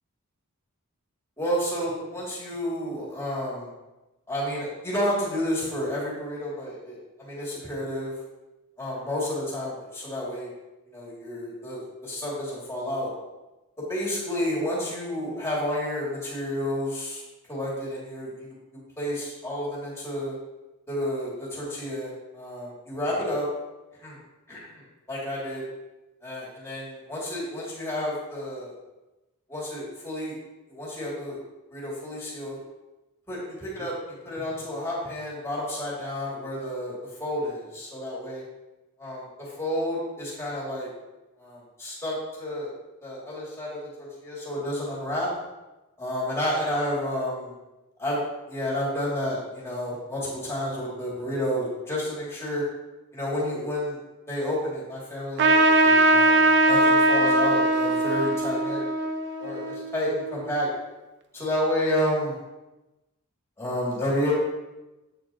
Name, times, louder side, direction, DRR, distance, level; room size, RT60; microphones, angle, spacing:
voice 1, 1.4-3.7 4.3-8.1 8.8-10.5 10.9-13.1 13.8-17.2 17.5-18.5 19.0-20.3 20.9-23.5 24.0-24.2 24.5-24.8 25.1-25.6 26.2-28.7 29.5-30.4 30.7-31.4 31.7-32.5 33.3-33.9 34.2-36.9 37.2-38.4 39.0-39.2 39.6-40.9 41.4-42.7 43.0-45.3 46.0-47.5 48.0-48.2 48.5-52.6 53.1-54.0 54.3-58.8 59.4-60.7 61.3-62.3 63.6-64.3, left 1 dB, 10° left, -7 dB, 2.4 m, -30 dB
Trumpet, 55.4-60.4, right 2 dB, 50° right, 0.6 m, -21 dB
8.2 x 6.6 x 2.9 m, 1.1 s
head